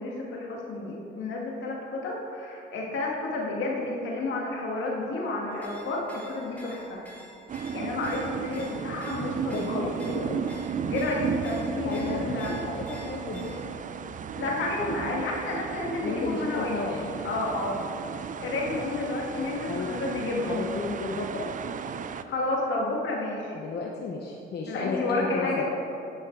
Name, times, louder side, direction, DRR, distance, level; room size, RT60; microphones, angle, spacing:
voice 1, 0.0-7.0 7.7-10.0 10.9-12.6 14.4-17.8 18.4-20.6 22.3-23.6 24.7-25.6, left 2 dB, 75° left, -2 dB, 1.9 m, -31 dB
sound 1, 5.5-13.8, left 1 dB, 5° left, 1.9 m, -50 dB
sound 2, 7.5-22.2, right 7 dB, 40° right, 0.4 m, -34 dB
voice 2, 9.5-10.5 11.8-13.7 16.0-17.2 19.7-19.9 20.5-21.5 23.5-25.6, left 4 dB, 55° left, -1 dB, 0.9 m, -33 dB
10.5 x 5.8 x 4.6 m, 2.8 s
cardioid pair, 90°, 20 cm